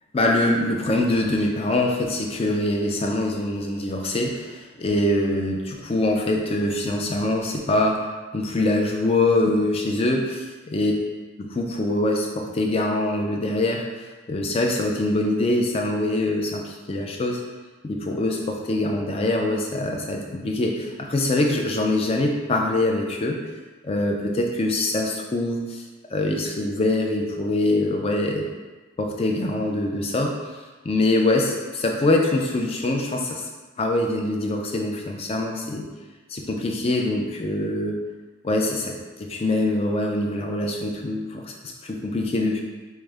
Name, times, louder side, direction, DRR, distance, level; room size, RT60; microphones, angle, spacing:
voice 1, 0.1-8.1 8.3-10.9 11.4-13.9 14.3-17.4 17.8-23.4 23.8-25.8 26.1-28.4 29.0-33.4 33.8-35.8 36.3-38.0 38.4-41.5 41.8-42.6, left 2 dB, 30° left, 1 dB, 0.4 m, -24 dB
4.6 x 2.1 x 3.3 m, 1.3 s
head